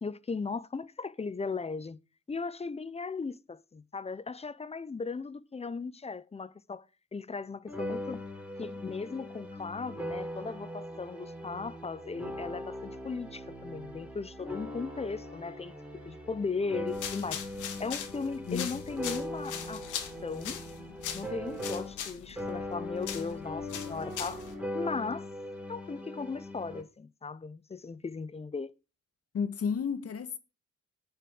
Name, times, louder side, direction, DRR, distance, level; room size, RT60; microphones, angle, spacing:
voice 1, 0.0-2.0 2.3-6.8 7.1-8.2 8.6-15.8 16.0-17.4 17.8-19.9 20.2-20.6 21.1-24.4 24.7-25.3 25.7-28.7, left 4 dB, 20° left, 0.7 m, -37 dB
sound 1, 7.7-22.1 22.4-26.8, left 1 dB, 5° right, 4.0 m, -40 dB
sound 2, 16.9-24.5, left 9 dB, 80° left, 2.3 m, -41 dB
voice 2, 18.4-18.8 29.3-30.4, left 6 dB, 50° left, 1.6 m, -32 dB
8.9 x 7.1 x 6.3 m
cardioid pair, 90°, 30 cm